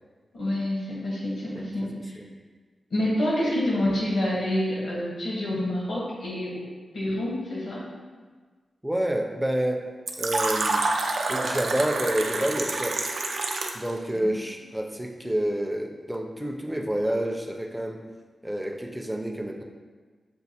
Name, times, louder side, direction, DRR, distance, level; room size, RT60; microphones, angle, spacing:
voice 1, 0.3-2.1 2.9-6.6 6.9-7.8, left 1 dB, 80° left, -6 dB, 1.4 m, -27 dB
voice 2, 8.8-9.8 10.2-10.9 11.3-13.0 13.7-18.0 18.4-19.6, right 1 dB, 5° right, 2 dB, 0.4 m, -28 dB
Fill (with liquid), 10.1-13.9, right 3 dB, 75° right, 0.4 m, -27 dB
6.9 x 2.5 x 2.8 m, 1.4 s
wide cardioid pair, 105°, 0 cm